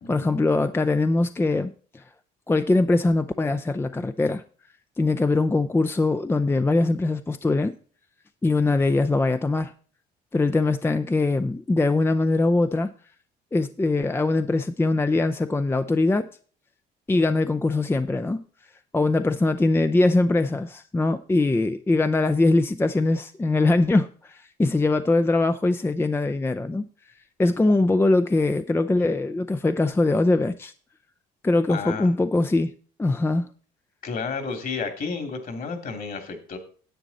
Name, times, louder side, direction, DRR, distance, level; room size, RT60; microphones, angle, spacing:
voice 1, 0.1-2.0 2.5-4.4 5.0-7.8 8.4-9.7 10.3-12.9 13.5-16.3 17.1-18.4 18.9-26.9 27.4-30.7 31.4-32.7 33.0-33.5, left 2 dB, 10° left, 0.5 m, -22 dB
voice 2, 31.7-32.1 34.0-36.6, left 5 dB, 50° left, 2.7 m, -31 dB
10.0 x 8.1 x 4.1 m
supercardioid pair, 80°, 19 cm